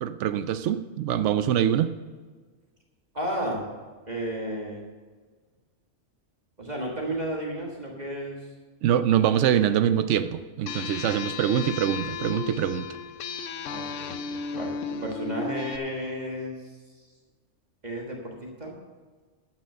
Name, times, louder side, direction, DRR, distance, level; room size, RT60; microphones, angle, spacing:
voice 1, 0.0-1.9 8.8-12.9, right 10 dB, 75° right, 12 dB, 0.9 m, -24 dB
voice 2, 3.1-3.6 4.1-4.9 6.6-8.4 13.7-17.1 17.8-18.7, equal, 35° right, -1 dB, 1.6 m, -33 dB
sound 1, 10.7-15.8, left 5 dB, 80° left, 1.0 m, -35 dB
12.5 x 6.1 x 6.6 m, 1.4 s
omnidirectional pair, 1.3 m